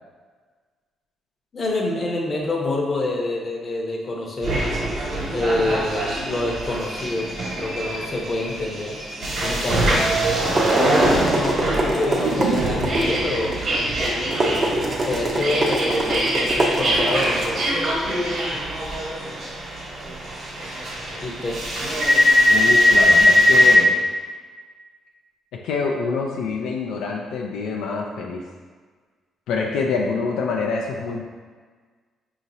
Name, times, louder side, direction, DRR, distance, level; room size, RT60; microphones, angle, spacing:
voice 1, 1.5-4.7 5.3-7.3 7.6-8.9 9.4-9.9 10.7-13.6 15.0-17.8 21.2-21.6, left 2 dB, 40° left, -1 dB, 0.8 m, -27 dB
sound 1, 4.4-23.8, equal, 55° right, 1.4 m, -22 dB
sound 2, 10.4-18.9, right 1 dB, 40° right, 0.7 m, -26 dB
sound 3, 12.2-16.2 16.5-16.6, right 4 dB, 85° right, 0.4 m, -31 dB
voice 2, 22.5-24.0 25.5-28.4 29.5-31.2, left 4 dB, 85° left, 0 dB, 0.4 m, -26 dB
4.9 x 2.9 x 2.7 m, 1.5 s
cardioid pair, 90°, 0 cm